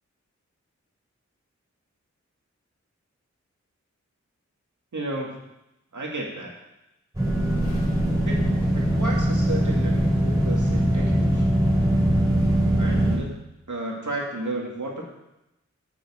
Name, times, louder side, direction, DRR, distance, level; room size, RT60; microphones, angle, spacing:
voice 1, 4.9-5.3 5.9-6.5 8.3-8.4 8.7-11.4 12.8-13.3 13.7-15.1, right 2 dB, 85° right, -1 dB, 1.9 m, -32 dB
sound 1, 7.1-13.2, right 1 dB, 10° right, 3.6 m, -21 dB
9.4 x 7.1 x 4.2 m, 0.90 s
wide cardioid pair, 65°, 29 cm